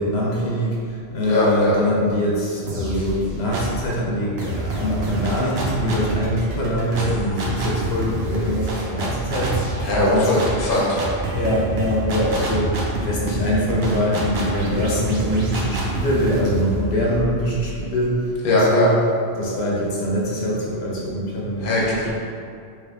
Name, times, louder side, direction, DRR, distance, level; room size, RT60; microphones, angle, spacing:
voice 1, 0.0-10.5 11.3-19.0 19.4-22.1, equal, 85° left, -4 dB, 0.9 m, -23 dB
voice 2, 1.2-1.8 9.8-11.0 18.4-18.9 21.6-22.1, left 1 dB, 55° left, -5 dB, 0.9 m, -20 dB
sound 1, 2.7-3.9 4.4-18.1, right 1 dB, 80° right, 0.9 m, -27 dB
3.3 x 3.0 x 3.4 m, 2.4 s
omnidirectional pair, 1.0 m